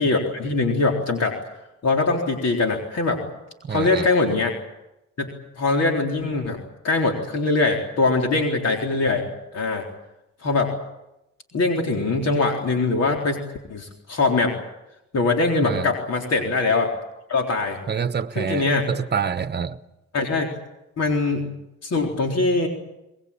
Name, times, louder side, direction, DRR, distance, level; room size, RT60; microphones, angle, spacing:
voice 1, 0.0-1.4 1.8-3.2 3.7-4.5 5.2-6.6 6.8-9.2 9.5-9.9 10.4-10.7 11.5-13.4 13.7-14.5 15.1-16.9 17.3-17.8 18.4-18.9 20.1-20.5 21.0-21.5 21.8-22.7, left 3 dB, 55° left, 4.0 m, -22 dB
voice 2, 3.6-4.1 15.6-15.9 17.9-19.8, right 6 dB, 35° right, 1.2 m, -27 dB
22.5 x 21.0 x 8.7 m
cardioid pair, 90°, 30 cm